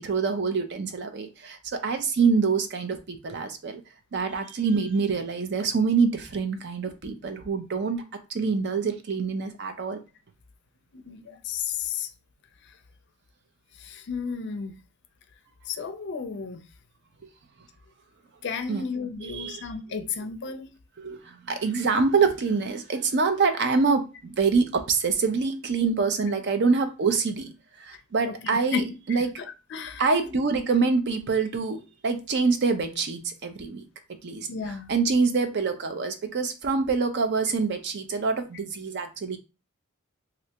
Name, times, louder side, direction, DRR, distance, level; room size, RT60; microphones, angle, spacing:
voice 1, 0.0-3.8 4.1-8.0 8.3-10.0 18.7-18.8 19.2-19.6 21.0-27.5 27.8-29.3 30.0-33.8 34.2-34.5 34.9-39.4, right 4 dB, 55° right, 0.5 m, -25 dB
voice 2, 10.9-12.1 12.6-12.8 13.8-14.8 15.7-16.6 18.4-20.7 27.9-28.0 28.2-30.3 34.5-34.9, left 5 dB, 55° left, 0.4 m, -33 dB
3.2 x 2.5 x 2.9 m
head